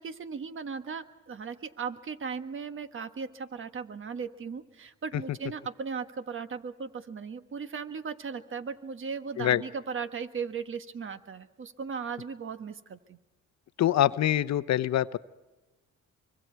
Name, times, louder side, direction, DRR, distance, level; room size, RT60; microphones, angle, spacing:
voice 1, 0.0-13.2, right 5 dB, 40° right, 9 dB, 1.5 m, -37 dB
voice 2, 13.8-15.2, left 12 dB, 60° left, 14 dB, 0.8 m, -24 dB
25.0 x 24.0 x 4.6 m, 1.2 s
cardioid pair, 90°, 30 cm